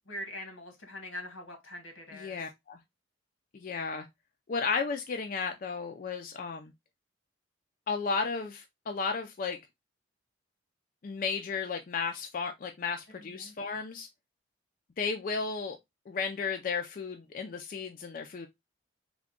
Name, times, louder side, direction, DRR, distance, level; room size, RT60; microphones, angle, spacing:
voice 1, 0.1-2.4 13.2-13.5, left 1 dB, 85° left, 1.2 m, -43 dB
voice 2, 2.1-2.8 3.5-4.1 4.5-6.7 7.9-9.6 11.0-14.1 15.0-15.8 16.1-18.5, left 5 dB, 45° left, 0.3 m, -34 dB
3.5 x 2.2 x 3.5 m
head